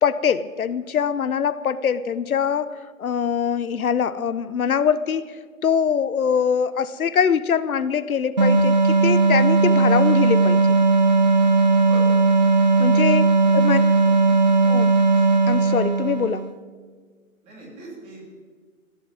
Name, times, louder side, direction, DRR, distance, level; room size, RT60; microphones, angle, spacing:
voice 1, 0.0-5.4 5.6-10.7 12.8-13.3 13.5-13.8 14.7-14.9 15.5-16.5, left 7 dB, 80° left, 14 dB, 0.9 m, -23 dB
sound 1, 8.4-16.5, right 3 dB, 35° right, 0.4 m, -17 dB
voice 2, 13.4-13.7 14.2-14.4 17.4-18.2, right 2 dB, 15° right, -2 dB, 3.3 m, -41 dB
14.5 x 8.4 x 9.1 m, 1.6 s
hypercardioid pair, 160°, 42 cm